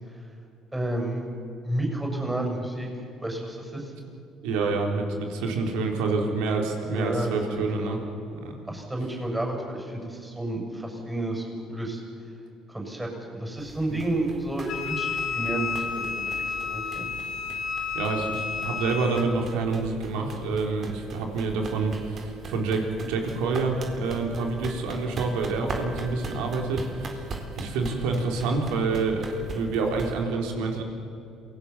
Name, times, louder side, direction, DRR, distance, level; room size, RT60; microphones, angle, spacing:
voice 1, 0.7-1.3 1.6-2.9 3.2-3.9 6.9-8.0 8.7-12.0 12.7-17.1, right 1 dB, 10° right, 1 dB, 7.4 m, -31 dB
voice 2, 4.4-8.0 8.4-8.6 13.9-14.0 17.9-27.2 27.6-30.8, right 3 dB, 80° right, 2 dB, 3.9 m, -27 dB
sound 1, 13.6-30.2, right 3 dB, 50° right, 3.9 m, -40 dB
Wind instrument woodwind instrument, 14.7-19.3, left 6 dB, 65° left, 3.0 m, -31 dB
27.5 x 18.5 x 7.5 m, 2.7 s
supercardioid pair, 70°, 0 cm